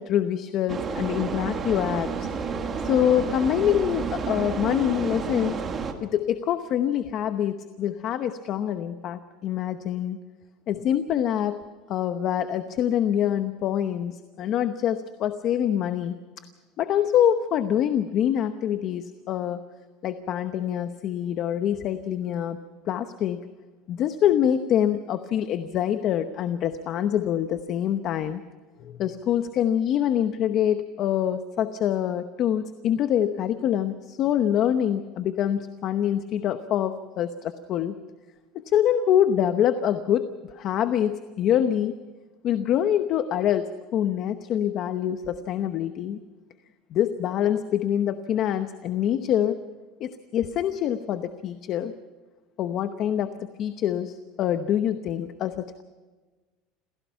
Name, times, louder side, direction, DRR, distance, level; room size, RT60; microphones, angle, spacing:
voice 1, 0.0-2.3 2.8-5.6 6.0-10.2 10.7-11.6 11.9-16.2 16.8-19.6 20.0-22.6 22.9-23.4 23.9-28.4 28.8-38.0 38.5-42.0 42.4-46.2 46.9-49.6 50.0-51.9 52.6-53.3 53.6-55.8, left 10 dB, 35° left, 10 dB, 0.9 m, -25 dB
sound 1, 0.7-5.9, right 5 dB, 20° right, 1.7 m, -30 dB
27.0 x 17.0 x 5.8 m, 1.3 s
cardioid pair, 170°, 0 cm